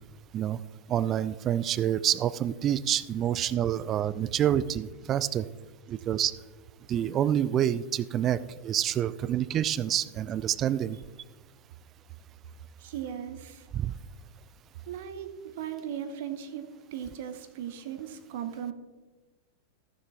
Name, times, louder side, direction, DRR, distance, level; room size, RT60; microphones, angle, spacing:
voice 1, 0.9-5.5 5.9-6.3 6.9-11.0 13.7-13.9, right 10 dB, 30° right, 17 dB, 0.4 m, -27 dB
voice 2, 12.8-13.7 14.9-18.7, right 9 dB, 55° right, 9 dB, 0.8 m, -38 dB
14.5 x 6.7 x 3.5 m, 1.2 s
figure-of-eight pair, 90°, 0 cm